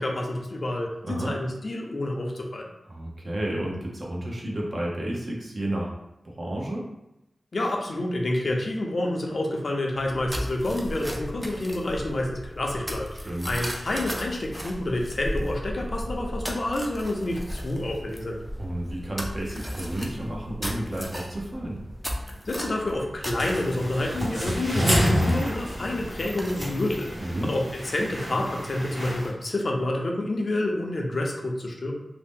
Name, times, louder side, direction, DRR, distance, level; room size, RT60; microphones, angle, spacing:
voice 1, 0.0-2.7 7.5-18.4 22.5-31.9, left 1 dB, 60° left, 0 dB, 0.5 m, -28 dB
voice 2, 1.0-1.3 2.9-5.9 6.2-6.8 13.2-13.5 18.6-21.8 27.2-27.5, right 1 dB, 50° right, -2 dB, 0.7 m, -31 dB
sound 1, 9.9-27.9, equal, 5° right, 0.5 m, -36 dB
sound 2, 23.4-29.3, equal, 70° right, 1.3 m, -29 dB
2.6 x 2.0 x 3.5 m, 0.90 s
wide cardioid pair, 70°, 0 cm